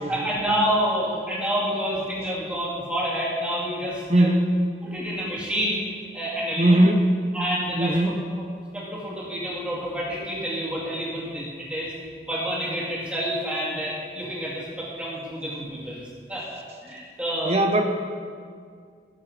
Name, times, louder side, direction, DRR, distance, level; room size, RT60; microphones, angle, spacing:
voice 1, 0.1-4.3 4.8-5.8 6.1-6.8 7.3-7.9 8.7-11.9 12.2-16.0 16.3-16.5 16.8-17.6, equal, 5° right, -7 dB, 2.5 m, -28 dB
voice 2, 4.1-4.6 6.6-7.1 7.8-8.2 17.4-17.8, right 1 dB, 35° right, 4 dB, 0.9 m, -20 dB
17.5 x 7.4 x 3.8 m, 2.1 s
head